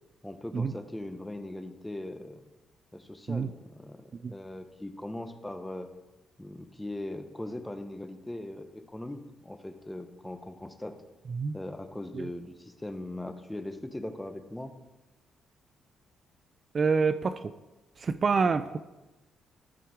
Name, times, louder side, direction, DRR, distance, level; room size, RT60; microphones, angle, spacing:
voice 1, 0.2-2.4 2.9-5.9 6.4-11.0 11.5-14.7 18.4-18.6, left 1 dB, 10° left, 9 dB, 0.8 m, -40 dB
voice 2, 16.7-17.5 18.0-18.8, right 5 dB, 40° right, 12 dB, 0.3 m, -27 dB
12.5 x 4.6 x 4.8 m, 1.1 s
cardioid pair, 90°, 0 cm